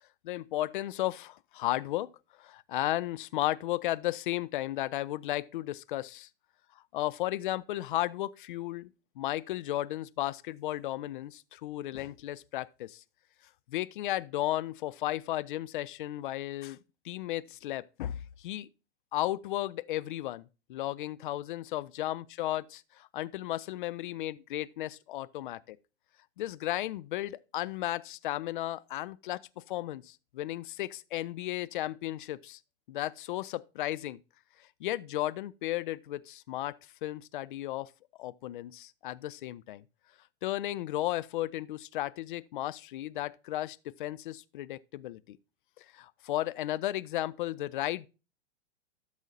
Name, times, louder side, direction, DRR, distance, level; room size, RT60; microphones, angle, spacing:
voice 1, 0.2-2.1 2.4-6.3 6.9-8.9 9.2-13.0 13.7-16.8 17.0-18.7 19.1-25.8 26.4-32.6 32.9-34.2 34.8-36.8 37.0-37.9 38.2-39.8 40.4-45.4 45.8-48.1, left 15 dB, 50° left, 0.5 m, -34 dB
12.5 x 6.3 x 2.7 m
figure-of-eight pair, 105°, 34 cm